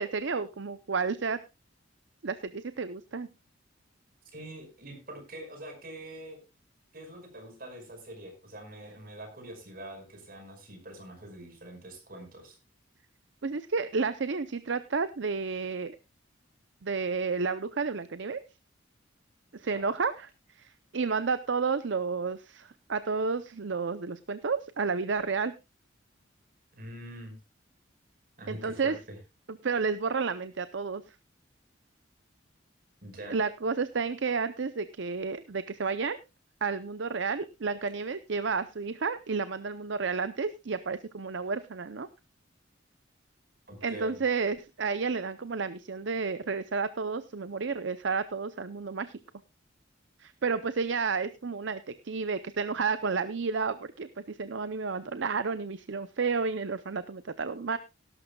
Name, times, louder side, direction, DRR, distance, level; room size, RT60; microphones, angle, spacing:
voice 1, 0.0-1.4 2.2-3.3 13.4-16.0 16.8-18.4 19.5-25.5 28.5-29.0 29.5-31.2 33.3-36.2 36.6-42.1 43.8-49.2 50.2-57.8, right 4 dB, 70° right, 13 dB, 0.6 m, -31 dB
voice 2, 4.3-6.4 6.9-12.6 19.6-19.8 26.8-27.3 28.4-29.2 33.0-33.4 43.7-44.2, right 1 dB, 50° right, 4 dB, 5.2 m, -44 dB
17.5 x 12.0 x 2.3 m, 0.26 s
head